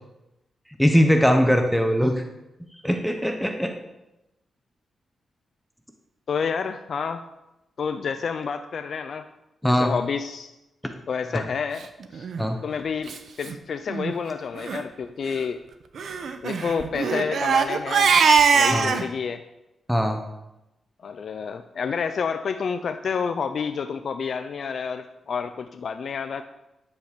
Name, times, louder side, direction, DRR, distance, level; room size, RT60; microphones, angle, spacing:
voice 1, 0.8-2.2 2.8-3.7 9.6-9.9 11.3-11.4 12.4-12.6 18.7-18.9 19.9-20.2, equal, ahead, 4 dB, 1.1 m, -20 dB
voice 2, 6.3-7.2 7.8-9.2 9.6-10.5 11.1-11.8 12.1-12.3 12.6-15.6 16.4-18.1 18.5-19.4 21.0-26.4, left 6 dB, 60° left, 8 dB, 0.6 m, -29 dB
Crying sobbing, 12.2-12.4 13.1-13.2 13.4-13.6 13.9-14.1 14.6-14.8 16.0-19.0, right 5 dB, 65° right, 1.0 m, -21 dB
10.5 x 8.5 x 6.8 m, 0.94 s
cardioid pair, 100°, 0 cm